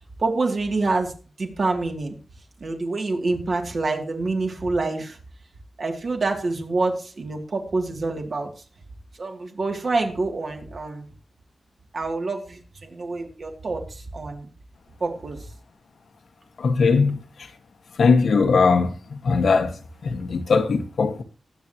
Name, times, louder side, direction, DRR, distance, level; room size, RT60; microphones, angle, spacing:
voice 1, 0.2-1.1 1.4-2.2 2.6-5.2 5.8-8.5 9.2-11.1 11.9-14.5 15.0-15.5, right 3 dB, 45° right, 2.8 m, -26 dB
voice 2, 16.6-17.2 18.0-18.9 19.2-19.7 20.0-21.2, left 4 dB, 65° left, 1.6 m, -19 dB
22.0 x 8.6 x 3.0 m
wide cardioid pair, 175°, 0 cm